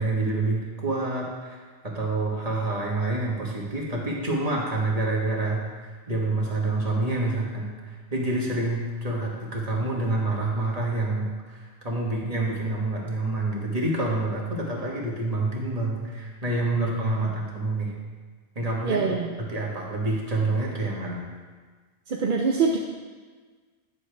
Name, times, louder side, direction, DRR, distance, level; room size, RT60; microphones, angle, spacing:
voice 1, 0.0-17.9 18.5-19.0 19.4-21.2, right 2 dB, 35° right, -3 dB, 1.5 m, -27 dB
voice 2, 18.8-19.3 22.1-22.8, right 5 dB, 55° right, 0 dB, 0.7 m, -25 dB
9.7 x 7.0 x 3.4 m, 1.5 s
omnidirectional pair, 1.1 m